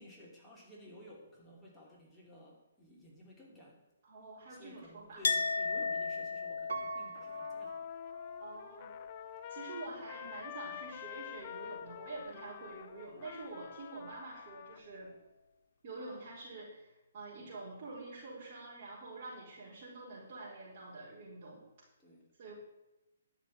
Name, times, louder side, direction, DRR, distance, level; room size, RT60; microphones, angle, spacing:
voice 1, 0.0-3.8 4.5-7.9 9.9-10.0 22.0-22.3, left 1 dB, 5° left, -4 dB, 2.7 m, -55 dB
voice 2, 4.0-5.2 8.4-8.9 9.5-15.1 15.8-21.6 22.4-22.5, right 3 dB, 45° right, -8 dB, 4.5 m, -47 dB
Chink clink, 5.2-10.8 11.0-11.9, left 4 dB, 70° left, 1.4 m, -38 dB
Piano, 6.7-8.7 9.2-9.3, right 5 dB, 80° right, 1.3 m, -44 dB
Trumpet, 7.1-14.8, left 11 dB, 30° left, 0.6 m, -49 dB
11.5 x 6.6 x 8.7 m, 0.99 s
hypercardioid pair, 155°, 0 cm